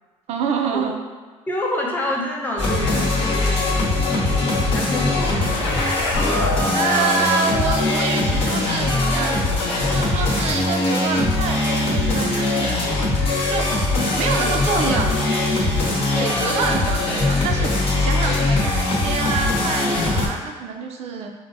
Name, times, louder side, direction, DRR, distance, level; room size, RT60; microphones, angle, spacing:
voice 1, 0.3-1.0 6.7-9.4 9.9-13.1 13.5-13.7 14.2-15.3 16.1-21.3, right 5 dB, 60° right, 3 dB, 0.4 m, -26 dB
voice 2, 1.5-5.9 6.3-7.3 7.9-8.6 13.9-15.1 15.8-16.5 17.0-17.2, left 1 dB, 15° left, -2 dB, 0.6 m, -30 dB
sound 1, 2.6-20.3, left 2 dB, 50° left, 0.9 m, -21 dB
sound 2, 5.4-9.4, left 3 dB, 90° left, 0.5 m, -30 dB
4.5 x 2.1 x 2.6 m, 1.4 s
cardioid pair, 115°, 13 cm